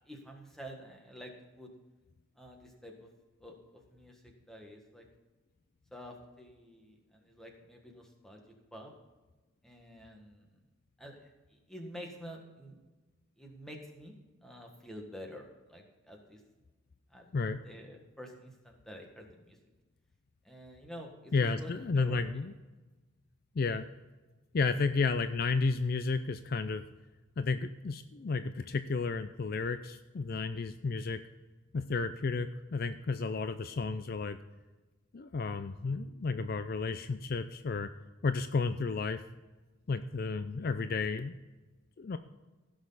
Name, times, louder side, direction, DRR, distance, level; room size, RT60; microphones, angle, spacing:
voice 1, 0.0-1.7 2.4-3.1 3.4-5.0 5.9-8.9 9.6-10.6 11.0-12.8 13.4-16.4 17.1-17.3 17.6-19.6 20.4-22.2, equal, ahead, 1 dB, 1.6 m, -49 dB
voice 2, 21.3-22.5 23.6-23.8 24.5-26.8 27.4-31.2 31.7-34.4 35.1-37.9 38.2-39.2 39.9-41.3 42.0-42.2, left 4 dB, 45° left, 11 dB, 0.4 m, -32 dB
16.0 x 6.4 x 4.0 m, 1.2 s
head